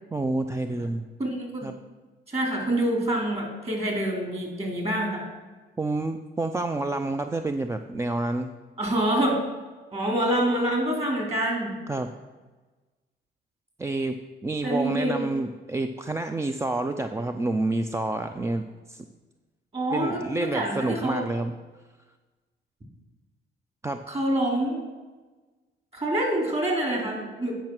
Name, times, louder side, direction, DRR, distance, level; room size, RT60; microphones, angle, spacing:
voice 1, 0.1-1.0 1.6-1.7 5.8-8.5 11.9-12.1 13.8-19.0 19.9-21.5 23.8-24.0, right 2 dB, 15° right, 7 dB, 0.4 m, -28 dB
voice 2, 1.2-1.7 2.3-5.2 8.8-9.4 9.9-11.7 14.6-15.3 19.7-21.2 24.1-24.8 25.9-27.6, right 1 dB, 30° right, 0 dB, 3.0 m, -26 dB
9.1 x 5.6 x 6.0 m, 1.3 s
cardioid pair, 90°, 20 cm